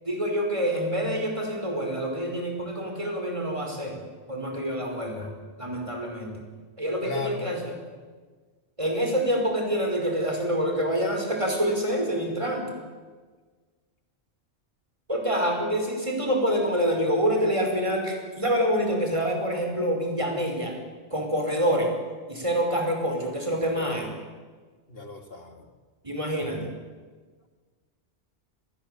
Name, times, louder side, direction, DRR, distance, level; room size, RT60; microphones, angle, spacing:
voice 1, 0.1-4.0 4.3-5.3 5.6-6.4 6.8-7.7 8.8-12.7 15.1-20.7 21.1-21.9 22.3-24.1 26.0-26.7, equal, 30° right, 2 dB, 5.3 m, -26 dB
voice 2, 7.0-7.6 24.9-25.7, left 4 dB, 65° left, 5 dB, 2.9 m, -35 dB
27.0 x 20.5 x 8.3 m, 1.5 s
omnidirectional pair, 1.1 m